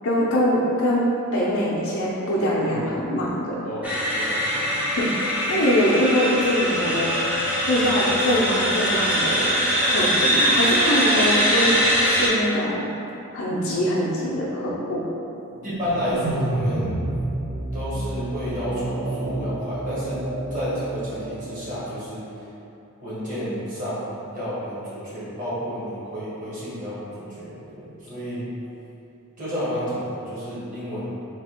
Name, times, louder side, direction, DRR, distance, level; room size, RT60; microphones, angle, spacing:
voice 1, 0.0-1.0 1.3-3.6 5.0-5.1 5.5-7.1 7.7-9.6 9.8-11.7 12.0-12.9 13.3-15.0, equal, 65° left, -6 dB, 0.6 m, -23 dB
voice 2, 3.6-4.9 15.6-17.0 17.7-20.2 20.5-22.5 23.0-28.5 29.4-31.2, equal, 35° right, -10 dB, 1.4 m, -31 dB
sound 1, 3.8-12.3, equal, 5° right, 0.5 m, -22 dB
sound 2, 15.6-21.9, right 1 dB, 85° right, 0.8 m, -29 dB
3.3 x 2.9 x 4.3 m, 2.9 s
head